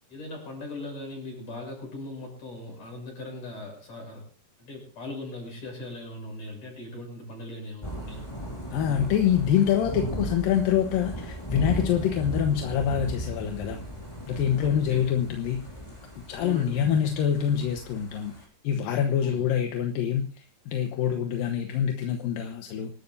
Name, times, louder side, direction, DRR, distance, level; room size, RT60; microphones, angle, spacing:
voice 1, 0.1-4.2 4.6-8.3 14.6-15.1 16.4-16.9 19.2-19.5, left 2 dB, 40° left, 0 dB, 8.1 m, -39 dB
Thunder / Rain, 7.8-18.4, right 1 dB, 5° left, 4.7 m, -36 dB
voice 2, 8.7-13.8 14.3-15.6 16.3-18.3 18.6-22.9, left 9 dB, 70° left, 4 dB, 2.6 m, -25 dB
26.0 x 13.0 x 2.7 m, 0.38 s
omnidirectional pair, 4.7 m